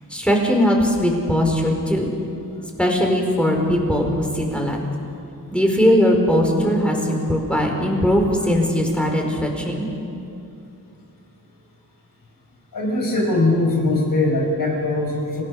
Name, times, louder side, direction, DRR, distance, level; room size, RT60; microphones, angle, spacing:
voice 1, 0.1-2.1 2.8-4.8 5.5-9.9, equal, 5° left, 1 dB, 4.8 m, -19 dB
voice 2, 12.7-15.4, left 2 dB, 70° left, 1 dB, 5.7 m, -21 dB
27.5 x 17.5 x 6.7 m, 2.7 s
cardioid pair, 85°, 35 cm